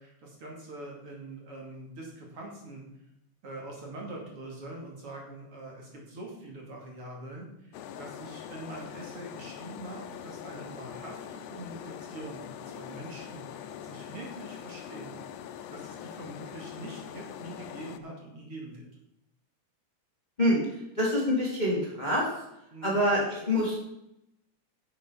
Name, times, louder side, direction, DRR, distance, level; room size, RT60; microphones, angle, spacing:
voice 1, 0.0-2.8 3.4-15.2 15.7-18.9 22.7-23.0, right 2 dB, 50° right, -1 dB, 3.0 m, -44 dB
sound 1, 7.7-18.0, left 9 dB, 85° left, 2.1 m, -43 dB
voice 2, 20.4-22.3 22.8-23.8, left 1 dB, 15° left, -3 dB, 2.2 m, -26 dB
10.5 x 7.1 x 5.6 m, 0.83 s
omnidirectional pair, 3.4 m